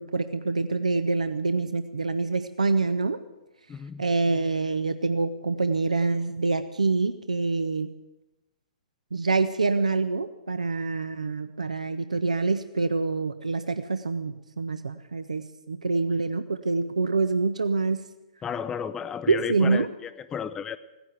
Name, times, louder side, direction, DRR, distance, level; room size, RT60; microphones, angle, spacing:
voice 1, 0.0-3.2 4.0-7.9 9.1-18.0 19.3-19.9, right 3 dB, 75° right, 0.7 m, -26 dB
voice 2, 3.7-4.0 18.4-20.8, left 7 dB, 15° left, 0.5 m, -33 dB
16.5 x 10.5 x 8.1 m
figure-of-eight pair, 115°, 4 cm